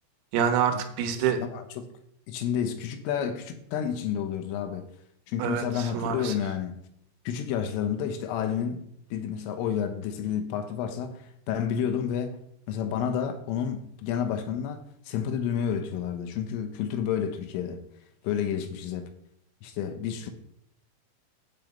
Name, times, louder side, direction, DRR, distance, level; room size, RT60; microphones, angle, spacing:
voice 1, 0.3-1.4 5.4-6.4, right 8 dB, 85° right, 4.0 m, -26 dB
voice 2, 1.4-1.9 2.3-4.9 5.3-6.8 7.3-8.8 9.1-12.4 12.7-17.8 18.2-19.1 19.6-20.3, left 8 dB, 80° left, 3.4 m, -30 dB
8.8 x 5.6 x 7.8 m
omnidirectional pair, 5.9 m